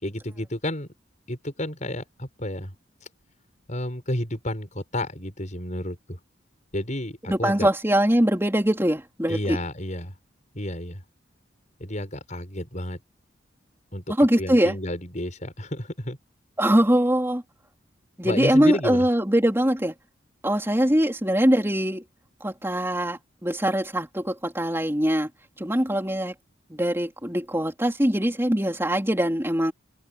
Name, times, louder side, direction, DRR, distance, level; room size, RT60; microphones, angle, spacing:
voice 1, 0.0-0.9 1.3-2.7 3.7-6.2 6.7-7.7 9.3-10.1 10.5-11.0 11.8-13.0 13.9-16.2 18.2-19.1, left 1 dB, 40° left, 7.0 m, -31 dB
voice 2, 7.3-9.6 14.2-14.7 16.6-17.4 18.2-19.9 20.4-22.0 22.4-25.3 25.6-26.3 26.7-29.7, equal, 10° right, 3.7 m, -22 dB
head